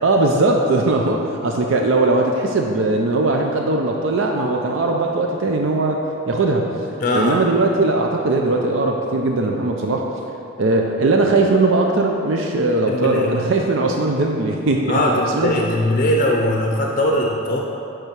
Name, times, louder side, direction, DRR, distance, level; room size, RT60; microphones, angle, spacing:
voice 1, 0.0-6.7 7.1-10.1 10.6-15.7, right 2 dB, 80° right, 2 dB, 0.5 m, -19 dB
voice 2, 7.0-7.4 12.9-13.3 14.9-17.6, left 1 dB, 40° left, 0 dB, 0.5 m, -20 dB
8.5 x 3.6 x 5.8 m, 2.8 s
head